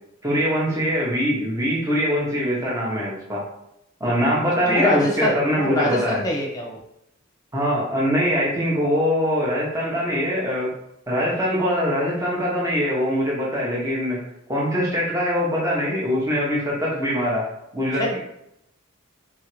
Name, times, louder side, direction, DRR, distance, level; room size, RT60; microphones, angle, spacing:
voice 1, 0.2-3.4 4.0-6.2 7.5-10.7 11.1-14.2 14.5-17.4 17.7-18.2, equal, 15° right, -5 dB, 1.0 m, -23 dB
voice 2, 4.7-6.8 18.0-18.2, left 1 dB, 20° left, -1 dB, 1.0 m, -24 dB
4.4 x 3.6 x 3.2 m, 0.80 s
head